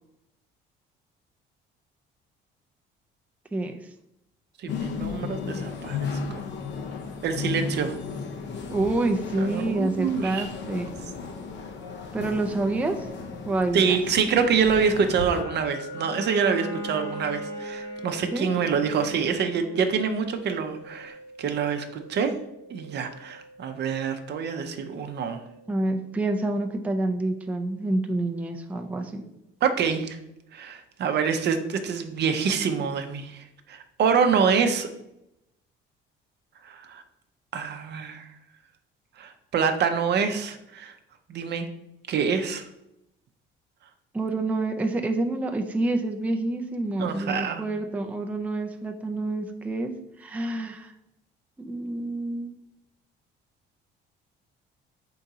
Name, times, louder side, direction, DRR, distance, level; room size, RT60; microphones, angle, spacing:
voice 1, 4.6-6.1 6.3-6.4 7.2-8.0 9.4-10.5 13.7-22.3 22.7-25.4 29.6-30.2 30.5-34.9 36.6-37.0 37.5-38.3 39.2-40.9 41.3-41.7 42.1-42.7 47.0-47.6, right 6 dB, 55° right, 7 dB, 0.6 m, -26 dB
sound 1, 4.7-15.4, left 5 dB, 60° left, 0.7 m, -35 dB
voice 2, 8.7-10.9 12.1-13.1 13.5-14.0 18.3-18.5 25.7-29.2 44.1-49.9 50.2-50.9 51.6-52.5, right 2 dB, 5° right, 4 dB, 0.4 m, -27 dB
sound 2, 15.1-28.0, equal, 85° left, 1.1 m, -43 dB
Bowed string instrument, 15.9-20.6, left 2 dB, 15° left, 0.9 m, -41 dB
3.8 x 2.7 x 4.7 m, 0.83 s
cardioid pair, 90°, 21 cm